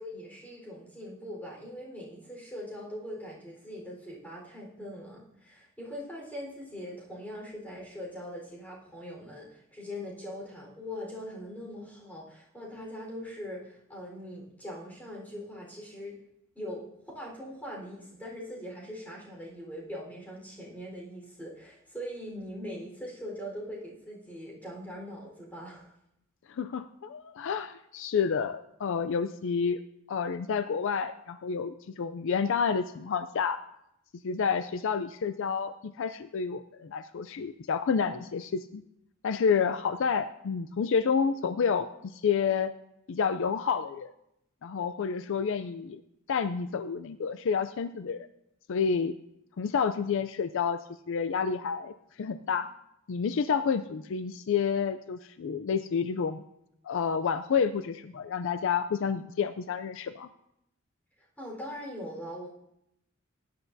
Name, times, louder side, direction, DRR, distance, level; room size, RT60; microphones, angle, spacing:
voice 1, 0.0-16.2 16.5-25.9 61.2-62.5, equal, 10° left, -3 dB, 4.1 m, -41 dB
voice 2, 26.5-29.8 30.1-33.6 34.2-38.8 39.2-42.7 43.1-44.1 44.6-46.0 46.3-48.3 48.7-49.1 49.6-50.8 51.1-52.7 53.1-56.4 56.8-60.3, left 6 dB, 65° left, 11 dB, 0.4 m, -29 dB
19.5 x 10.5 x 2.7 m, 0.79 s
head